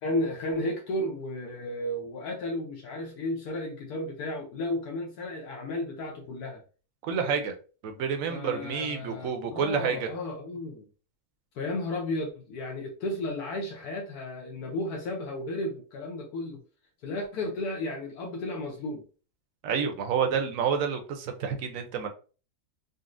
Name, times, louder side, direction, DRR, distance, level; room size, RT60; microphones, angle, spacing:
voice 1, 0.0-6.6 8.3-10.9 11.5-16.6 17.0-19.0, left 1 dB, 75° left, -1 dB, 1.1 m, -33 dB
voice 2, 7.0-7.5 7.8-10.1 19.6-22.1, right 6 dB, 65° right, 5 dB, 0.9 m, -29 dB
3.9 x 2.1 x 2.5 m, 0.36 s
omnidirectional pair, 1.7 m